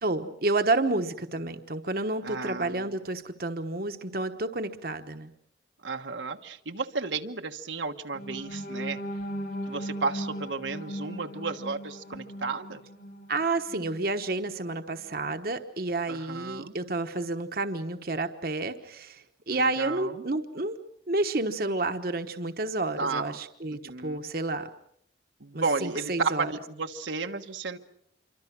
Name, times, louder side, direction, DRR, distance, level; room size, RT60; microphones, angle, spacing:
voice 1, 0.0-5.3 13.3-20.8 21.1-24.7 25.5-26.5, right 2 dB, 50° right, 7 dB, 1.2 m, -30 dB
voice 2, 2.2-2.9 5.8-9.0 9.7-12.8 16.1-16.7 19.8-20.2 23.0-23.3 23.7-24.3 25.4-27.8, right 4 dB, 80° right, 5 dB, 1.3 m, -33 dB
sound 1, 8.1-14.1 14.6-14.7 15.1-15.3, equal, 60° left, 5.2 m, -38 dB
27.0 x 24.5 x 6.0 m, 0.69 s
head